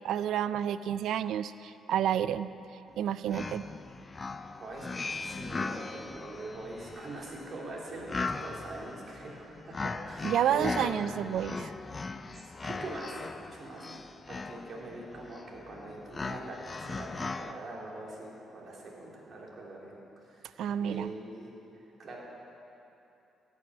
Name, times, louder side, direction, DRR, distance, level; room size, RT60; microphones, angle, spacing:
voice 1, 0.0-2.5 3.0-3.7 10.2-11.7 20.6-21.1, right 10 dB, 80° right, 15 dB, 0.4 m, -30 dB
sound 1, 3.0-3.1 3.3-17.5, left 3 dB, 30° left, 0.5 m, -39 dB
voice 2, 4.6-10.9 12.3-21.5 22.0-22.2, right 2 dB, 50° right, -3 dB, 3.0 m, -43 dB
13.0 x 6.2 x 9.5 m, 2.8 s
cardioid pair, 75°, 0 cm